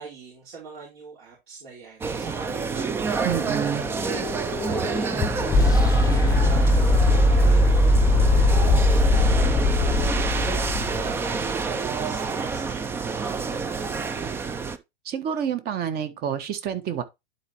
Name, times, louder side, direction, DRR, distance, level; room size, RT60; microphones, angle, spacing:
voice 1, 0.0-3.1 3.4-6.9 7.3-10.7 11.0-13.6 13.8-14.8, right 4 dB, 55° right, 4.4 m, -41 dB
sound 1, 2.0-14.8, right 5 dB, 10° right, 0.3 m, -28 dB
voice 2, 3.2-3.9 15.0-17.0, right 9 dB, 30° right, 1.4 m, -28 dB
sound 2, 3.3-11.4, left 2 dB, 10° left, 0.9 m, -20 dB
11.0 x 4.5 x 3.0 m
hypercardioid pair, 120°, 31 cm